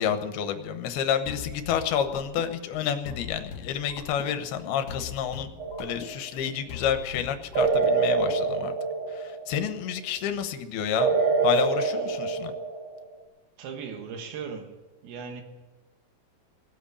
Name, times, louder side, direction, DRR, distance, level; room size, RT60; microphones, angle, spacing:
voice 1, 0.0-5.5 5.8-8.7 9.1-11.1 11.4-12.5, left 8 dB, 80° left, 8 dB, 2.9 m, -29 dB
sound 1, 1.3-8.4, left 7 dB, 60° left, 2.2 m, -42 dB
sound 2, 5.6-6.2 7.6-9.6 11.0-13.1, right 4 dB, 60° right, 2.9 m, -26 dB
voice 2, 13.6-14.8 15.0-15.4, right 6 dB, 75° right, 4 dB, 3.5 m, -38 dB
18.0 x 8.1 x 8.4 m, 1.2 s
omnidirectional pair, 4.5 m